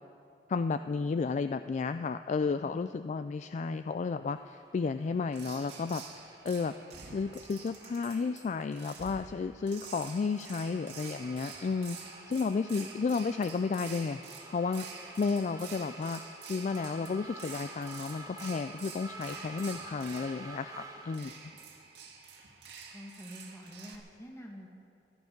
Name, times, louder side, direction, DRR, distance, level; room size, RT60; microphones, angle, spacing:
voice 1, 0.5-6.0 6.4-6.7 7.1-14.2 14.5-14.9 15.2-21.3, left 4 dB, 40° left, 10 dB, 0.3 m, -32 dB
sound 1, 4.3-21.2, right 2 dB, 20° right, 1.5 m, -51 dB
sound 2, 5.3-24.0, right 5 dB, 70° right, 1.9 m, -48 dB
voice 2, 22.9-24.7, equal, 15° left, 0 dB, 2.2 m, -47 dB
21.5 x 12.0 x 5.3 m, 2.5 s
head